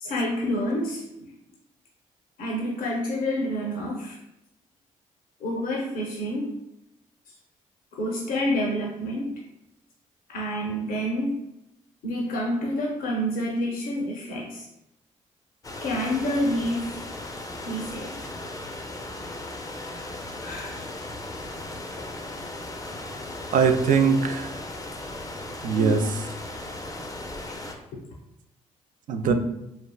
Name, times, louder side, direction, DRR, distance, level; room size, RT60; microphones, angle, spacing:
voice 1, 0.0-1.0 2.4-4.2 5.4-6.5 8.0-9.3 10.3-11.4 12.0-14.7 15.8-17.0 17.7-18.1 19.9-20.0 20.4-20.9 23.9-24.0 25.8-26.1 29.2-29.3, equal, 60° left, -2 dB, 0.6 m, -28 dB
sound 1, 15.6-27.7, left 2 dB, 20° left, 0.5 m, -37 dB
voice 2, 23.5-24.6 25.6-26.2 29.1-29.3, right 6 dB, 55° right, 7 dB, 0.4 m, -22 dB
3.3 x 2.3 x 2.3 m, 0.86 s
hypercardioid pair, 45°, 16 cm